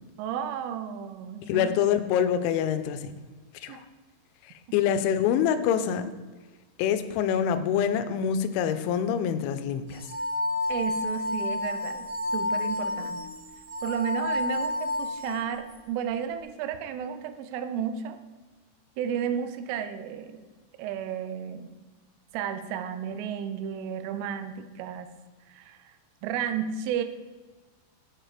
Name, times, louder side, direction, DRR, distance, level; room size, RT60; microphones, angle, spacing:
voice 1, 0.2-1.7 3.7-3.8 10.7-12.1 12.3-13.2 13.8-18.2 19.0-20.4 20.8-21.7 22.3-25.1 25.5-25.9 26.2-27.0, right 8 dB, 85° right, 9 dB, 3.1 m, -32 dB
voice 2, 1.5-3.1 3.6-3.8 4.7-6.1 6.8-10.0, left 8 dB, 85° left, 10 dB, 2.8 m, -25 dB
sound 1, 9.9-15.8, left 2 dB, 70° right, 2.7 m, -30 dB
9.0 x 4.9 x 4.8 m, 1.3 s
omnidirectional pair, 5.6 m